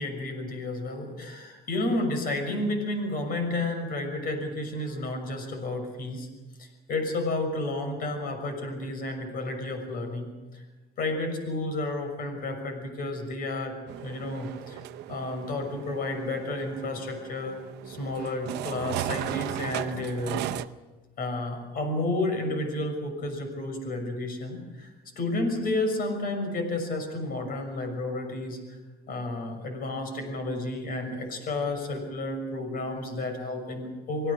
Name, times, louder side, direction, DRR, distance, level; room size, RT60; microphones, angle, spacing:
voice 1, 0.0-6.3 6.6-10.3 10.5-10.6 11.0-13.8 14.0-14.8 15.1-17.6 17.9-20.4 21.2-24.9 25.2-28.8 29.1-34.3, left 2 dB, 60° left, 6 dB, 6.3 m, -31 dB
sound 1, 13.9-20.7, right 14 dB, 85° right, 0.7 m, -36 dB
26.0 x 17.5 x 6.6 m, 1.2 s
cardioid pair, 110°, 17 cm